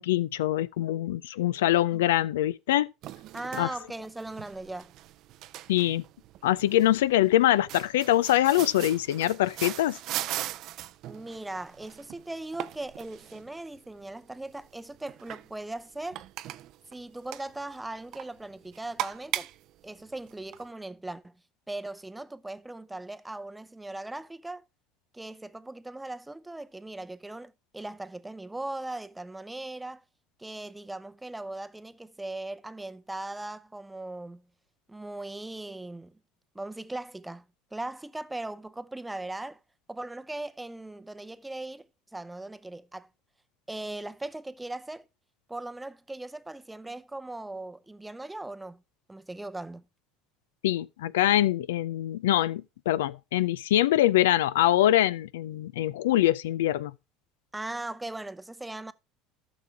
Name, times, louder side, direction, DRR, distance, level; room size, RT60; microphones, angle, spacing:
voice 1, 0.0-2.9 3.6-3.7 5.7-6.0 6.4-10.0 50.6-56.9, left 14 dB, 85° left, 0.4 m, -24 dB
sound 1, 3.0-20.7, right 14 dB, 60° right, 0.5 m, -40 dB
voice 2, 3.3-4.9 11.1-16.2 16.9-19.5 19.8-21.3 21.7-24.6 25.1-30.0 30.4-34.4 34.9-36.2 36.5-37.4 37.7-39.6 39.9-41.9 42.1-43.1 43.7-45.1 45.5-48.8 49.1-49.8 57.5-58.9, right 2 dB, 10° right, 0.6 m, -39 dB
13.5 x 6.0 x 3.5 m
hypercardioid pair, 85°, 0 cm